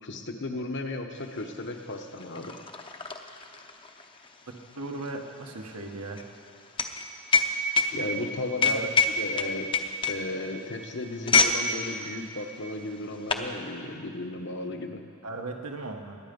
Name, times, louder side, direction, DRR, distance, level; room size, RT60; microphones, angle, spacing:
voice 1, 0.0-2.5 7.9-9.7 10.1-15.0, left 2 dB, 55° left, 5 dB, 1.1 m, -35 dB
sound 1, 1.3-1.4 1.7-11.6 11.9-12.2 12.9-13.5, left 4 dB, 25° left, 0.7 m, -27 dB
voice 2, 4.7-6.2 8.6-8.9 15.2-16.2, right 2 dB, 80° right, 2 dB, 1.4 m, -37 dB
21.0 x 8.9 x 5.3 m, 2.3 s
head